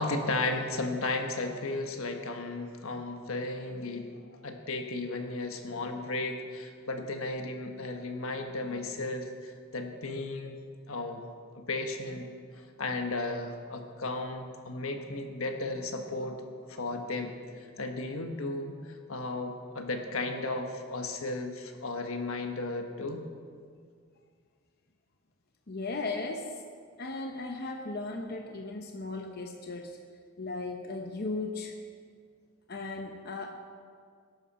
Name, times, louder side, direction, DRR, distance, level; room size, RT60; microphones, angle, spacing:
voice 1, 0.0-10.6 10.9-11.2 11.5-16.4 16.7-17.3 17.8-18.8 19.1-23.3, left 2 dB, 80° left, 4 dB, 1.4 m, -34 dB
voice 2, 25.7-26.6 27.0-30.0 30.4-31.7 32.7-33.6, left 3 dB, 45° left, 3 dB, 0.8 m, -36 dB
19.0 x 11.0 x 4.3 m, 2.1 s
head